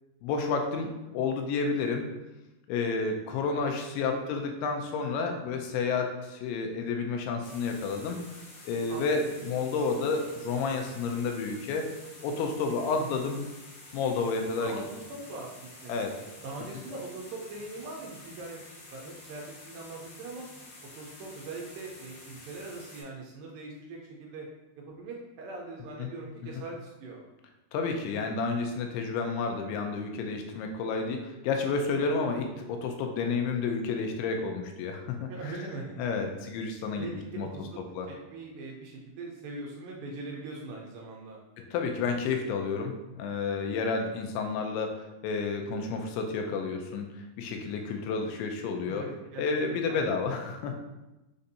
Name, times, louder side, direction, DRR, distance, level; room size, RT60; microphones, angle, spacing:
voice 1, 0.2-0.9 1.1-2.1 2.7-8.2 8.7-11.9 12.2-13.4 13.9-14.8 15.9-16.1 26.0-26.1 26.5-26.6 27.7-35.5 36.0-37.1 37.4-37.5 38.0-38.1 41.6-49.1 49.4-50.7, left 4 dB, 90° left, 4 dB, 2.6 m, -30 dB
voice 2, 4.0-4.3 8.9-9.5 12.9-13.3 14.6-16.0 16.4-18.6 18.9-20.5 21.0-24.5 24.8-27.3 31.9-32.2 35.3-36.0 37.0-37.8 38.1-41.4 48.9-50.3, right 3 dB, 80° right, -2 dB, 2.2 m, -41 dB
sound 1, 7.4-23.0, left 2 dB, 70° left, 1.6 m, -49 dB
6.4 x 2.6 x 2.7 m, 1.0 s
omnidirectional pair, 4.5 m